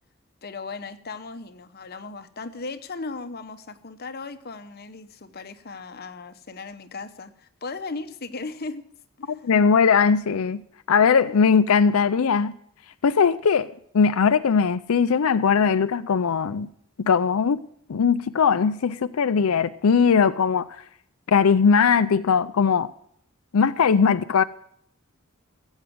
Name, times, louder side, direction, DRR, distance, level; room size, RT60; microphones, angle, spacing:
voice 1, 0.4-8.9 9.2-9.5, left 3 dB, 45° left, 0.9 m, -37 dB
voice 2, 9.3-10.6 10.9-12.5 13.0-16.7 17.0-17.6 17.9-20.8 21.3-22.9 23.5-24.4, left 6 dB, 80° left, 0.5 m, -20 dB
15.0 x 8.2 x 6.1 m
head